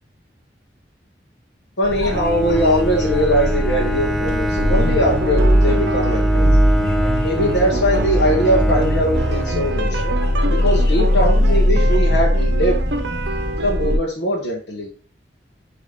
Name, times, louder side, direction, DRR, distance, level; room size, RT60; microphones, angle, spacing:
voice 1, 1.8-6.5 7.2-10.1 10.4-12.8 13.6-14.9, equal, 80° left, -2 dB, 1.2 m, -21 dB
sound 1, 1.8-14.0, equal, 60° left, 1.1 m, -20 dB
Bowed string instrument, 2.1-10.3, left 1 dB, ahead, 0.5 m, -25 dB
sound 2, 4.6-14.0, right 2 dB, 75° right, 0.7 m, -28 dB
8.7 x 3.1 x 3.6 m, 0.40 s
head